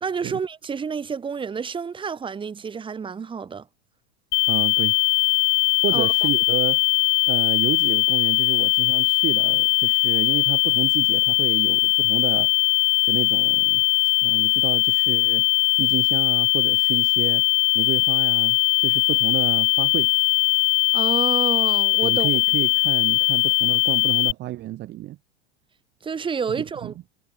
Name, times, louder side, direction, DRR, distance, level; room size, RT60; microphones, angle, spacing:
voice 1, 0.0-3.7 5.9-6.1 20.9-22.3 26.0-27.0, right 6 dB, 15° right, 2.0 m, -29 dB
sound 1, 4.3-24.3, left 32 dB, 50° left, 0.6 m, -20 dB
voice 2, 4.5-5.0 5.8-6.8 7.3-12.5 13.0-13.8 14.2-15.5 15.8-17.4 17.7-20.1 22.0-25.2 26.8-26.9, right 15 dB, 30° right, 1.2 m, -30 dB
supercardioid pair, 130°, 33 cm